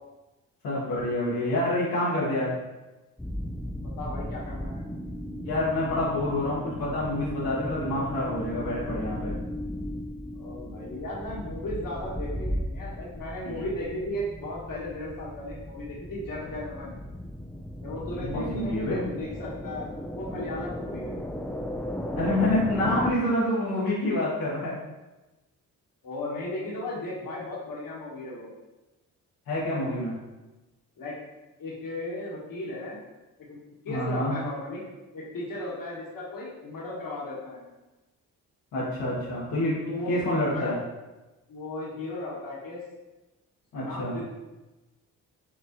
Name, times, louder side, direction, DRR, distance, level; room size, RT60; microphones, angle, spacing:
voice 1, 0.6-2.5 5.4-9.3 18.1-19.0 22.2-24.8 29.5-30.1 33.9-34.3 38.7-40.8 43.7-44.2, left 1 dB, 90° left, -8 dB, 1.3 m, -27 dB
sound 1, 3.2-23.1, equal, 5° left, 0.4 m, -36 dB
voice 2, 4.0-4.8 10.3-16.9 17.8-21.2 26.0-28.5 31.0-31.2 31.6-33.0 33.4-33.6 33.8-34.8 35.1-37.7 39.8-40.1 40.5-40.8 41.5-42.8 43.7-44.2, left 1 dB, 65° left, -4 dB, 1.4 m, -36 dB
6.0 x 2.4 x 3.0 m, 1.1 s
cardioid pair, 65°, 35 cm